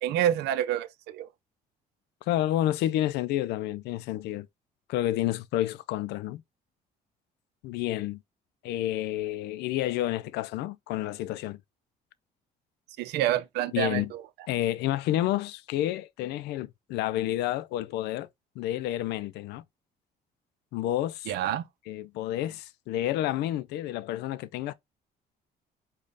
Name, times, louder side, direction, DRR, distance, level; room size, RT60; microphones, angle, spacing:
voice 1, 0.0-1.3 13.0-14.2 21.3-21.6, right 11 dB, 85° right, 0.7 m, -28 dB
voice 2, 2.2-4.5 4.9-6.4 7.6-8.2 8.6-11.6 13.7-14.1 14.5-18.3 18.6-19.6 20.7-21.3 21.9-24.7, left 13 dB, 85° left, 0.5 m, -30 dB
5.3 x 2.3 x 3.9 m
cardioid pair, 110°, 17 cm